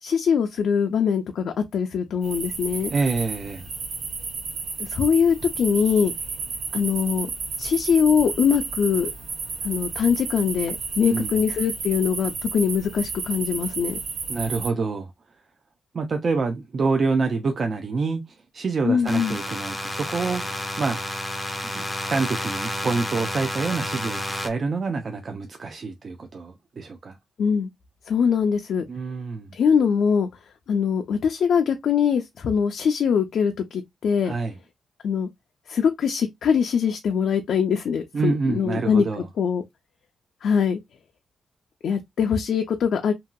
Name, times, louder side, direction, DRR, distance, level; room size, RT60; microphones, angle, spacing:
voice 1, 0.0-2.9 4.8-6.1 6.7-7.3 7.6-9.1 9.6-14.0 18.8-19.4 27.4-27.7 28.1-28.8 29.5-30.3 30.7-34.3 35.0-35.3 35.7-39.0 39.4-39.6 40.4-40.8 41.8-43.1, left 7 dB, 70° left, 0.4 m, -22 dB
sound 1, 2.2-14.7, right 4 dB, 80° right, 1.0 m, -32 dB
voice 2, 2.9-3.7 11.1-11.4 14.3-15.1 15.9-18.2 18.5-21.0 21.7-27.2 28.9-29.6 34.2-34.5 38.1-39.3, right 4 dB, 45° right, 0.4 m, -27 dB
sound 2, 19.1-24.5, left 1 dB, 10° left, 0.5 m, -30 dB
2.8 x 2.6 x 2.2 m
wide cardioid pair, 130°, 0 cm